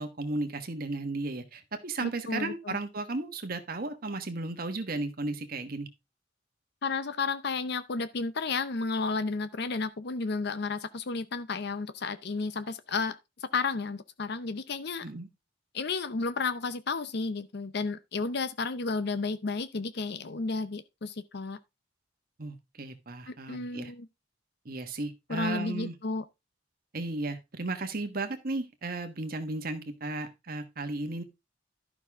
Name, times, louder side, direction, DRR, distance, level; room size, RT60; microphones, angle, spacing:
voice 1, 0.0-5.9 15.0-15.3 22.4-23.9 24.6-25.9 26.9-31.2, right 2 dB, 50° right, 1.3 m, -34 dB
voice 2, 2.0-2.8 6.8-15.0 15.7-21.6 23.3-24.1 25.3-26.2, left 4 dB, 60° left, 0.6 m, -32 dB
12.0 x 6.2 x 3.5 m
head